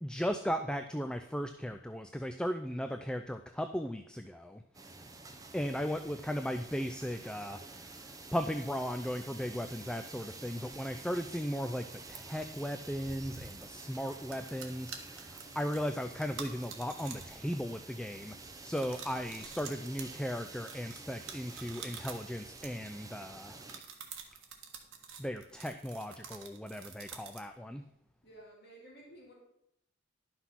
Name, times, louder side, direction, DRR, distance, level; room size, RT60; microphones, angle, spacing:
voice 1, 0.0-4.6 5.5-23.6 25.2-27.8, equal, 5° left, 7 dB, 0.3 m, -37 dB
sound 1, 4.7-23.8, right 3 dB, 15° right, 0.9 m, -49 dB
sound 2, 14.2-17.4 17.7-18.1 18.7-23.1 23.5-27.5, right 7 dB, 75° right, 1.5 m, -48 dB
voice 2, 28.2-29.3, right 1 dB, 50° left, -2 dB, 3.0 m, -54 dB
11.0 x 6.0 x 5.8 m, 0.78 s
head